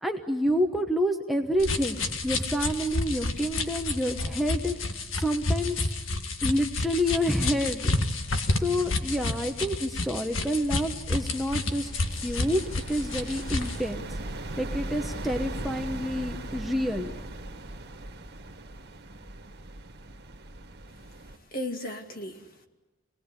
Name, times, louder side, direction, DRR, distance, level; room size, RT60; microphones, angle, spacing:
voice 1, 0.0-5.9 6.4-8.0 8.6-12.6 12.9-14.0 14.6-17.1, equal, ahead, 3 dB, 1.0 m, -28 dB
sound 1, 1.6-13.8, left 2 dB, 75° left, 1.8 m, -30 dB
sound 2, 11.1-21.4, right 1 dB, 50° right, 1.9 m, -39 dB
voice 2, 20.9-22.7, left 1 dB, 45° left, 5 dB, 2.2 m, -37 dB
27.5 x 19.5 x 9.8 m, 1.1 s
head